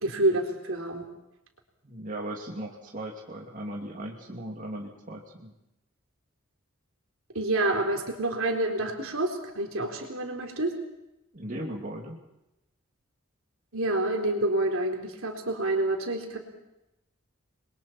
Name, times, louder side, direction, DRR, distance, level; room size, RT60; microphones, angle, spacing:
voice 1, 0.0-1.1 7.3-10.7 13.7-16.4, right 2 dB, 75° right, 2 dB, 3.7 m, -28 dB
voice 2, 1.8-5.5 11.3-12.2, right 1 dB, 40° right, -1 dB, 2.7 m, -37 dB
28.5 x 22.0 x 4.5 m, 0.91 s
head